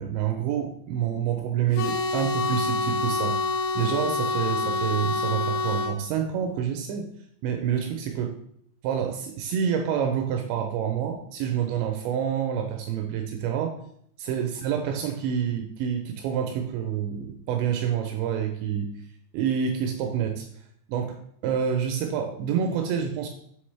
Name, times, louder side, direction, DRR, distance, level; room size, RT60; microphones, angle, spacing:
voice 1, 0.0-3.4 3.8-7.1 7.4-8.4 8.8-13.8 14.2-18.9 19.3-20.5 20.9-23.3, right 8 dB, 85° right, 4 dB, 2.6 m, -27 dB
sound 1, 1.8-6.0, left 3 dB, 80° left, 2.6 m, -27 dB
7.8 x 3.8 x 3.2 m, 0.67 s
omnidirectional pair, 5.5 m